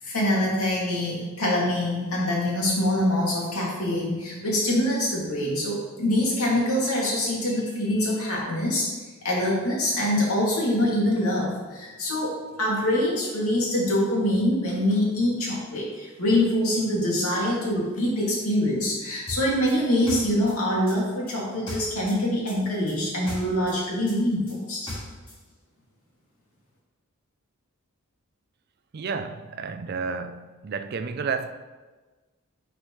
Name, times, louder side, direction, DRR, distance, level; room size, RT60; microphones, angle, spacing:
voice 1, 0.0-8.9 9.2-24.8, left 1 dB, 85° left, 2.4 m, -24 dB
sound 1, 19.3-22.2 22.5-25.4, left 1 dB, 25° left, 2.2 m, -38 dB
voice 2, 28.9-31.5, right 5 dB, 45° right, 0.4 m, -31 dB
9.8 x 4.9 x 3.1 m
head